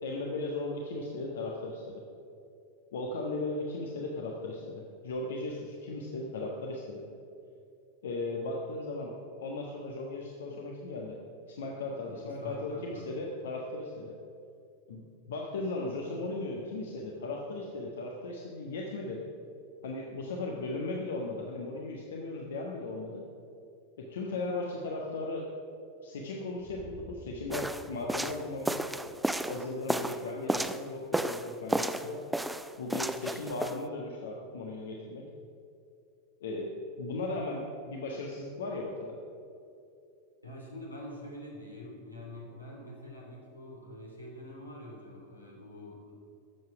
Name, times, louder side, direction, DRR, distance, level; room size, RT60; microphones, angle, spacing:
voice 1, 0.0-2.0 2.9-7.0 8.0-9.1 9.4-11.2 11.5-14.1 14.9-15.0 15.3-19.2 19.8-23.2 24.0-25.5 26.0-28.9 29.5-32.2 32.8-35.2 36.4-38.9, left 2 dB, 60° left, -1 dB, 1.3 m, -37 dB
voice 2, 12.0-13.1 40.4-46.1, left 1 dB, 85° left, -3 dB, 3.1 m, -45 dB
sound 1, 26.6-30.6, right 4 dB, 30° right, 1.0 m, -53 dB
sound 2, 27.5-30.8 31.1-32.1 32.3-33.8, right 1 dB, 5° right, 0.4 m, -32 dB
13.5 x 7.8 x 6.0 m, 2.6 s
figure-of-eight pair, 90°, 0 cm